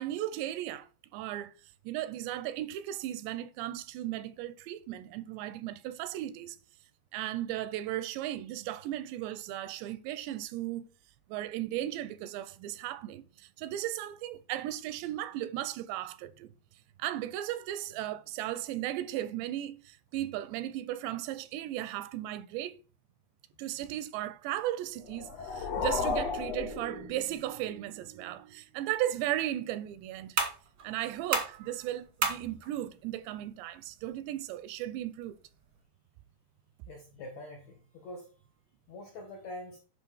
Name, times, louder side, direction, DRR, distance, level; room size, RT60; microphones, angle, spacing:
voice 1, 0.0-1.5 1.8-6.6 7.1-10.9 11.3-16.5 17.0-22.8 23.6-30.4 30.8-35.4, right 13 dB, 85° right, 2.8 m, -36 dB
sound 1, 25.0-27.6, left 5 dB, 85° left, 1.4 m, -34 dB
sound 2, 28.8-35.8, right 4 dB, 45° right, 1.2 m, -38 dB
voice 2, 36.9-38.3 38.9-39.8, left 1 dB, 65° left, 1.8 m, -44 dB
10.0 x 5.6 x 4.5 m
omnidirectional pair, 5.0 m